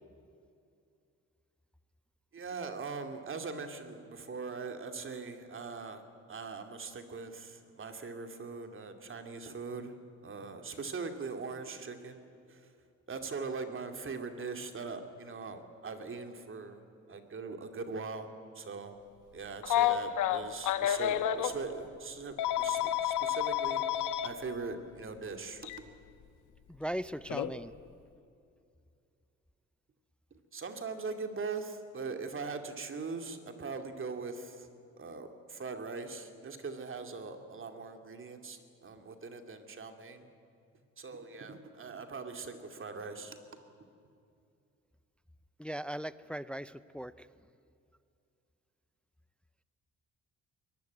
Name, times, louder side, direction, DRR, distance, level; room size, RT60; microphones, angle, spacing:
voice 1, 2.3-6.0 6.3-9.9 10.2-12.7 13.1-16.8 17.1-18.3 18.5-18.9 19.3-25.7 30.3-34.7 35.0-40.3 41.0-43.4, right 4 dB, 45° right, 6 dB, 2.6 m, -41 dB
Telephone, 19.6-21.5 22.4-24.3 25.6-25.8 27.3-27.5, left 11 dB, 85° left, 1.2 m, -29 dB
voice 2, 26.7-27.7 45.6-47.3, equal, 5° left, 16 dB, 0.5 m, -38 dB
23.0 x 19.0 x 9.5 m, 2.5 s
cardioid pair, 90°, 30 cm